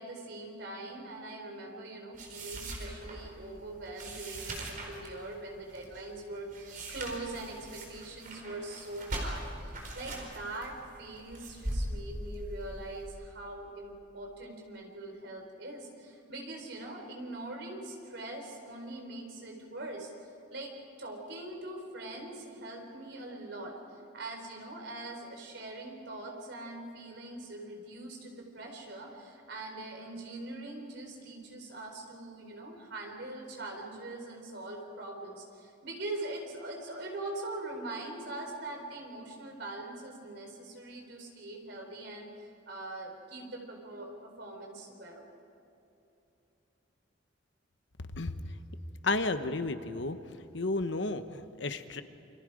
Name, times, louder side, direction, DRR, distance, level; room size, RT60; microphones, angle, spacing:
voice 1, 0.0-20.1 20.5-20.7 21.0-42.3 42.7-45.3, right 2 dB, 60° right, 1 dB, 4.6 m, -42 dB
sound 1, 2.1-13.0, right 1 dB, 45° right, 4.6 m, -40 dB
voice 2, 49.0-50.2 50.5-52.0, left 3 dB, 65° left, 9 dB, 1.0 m, -32 dB
28.5 x 25.0 x 5.1 m, 2.9 s
head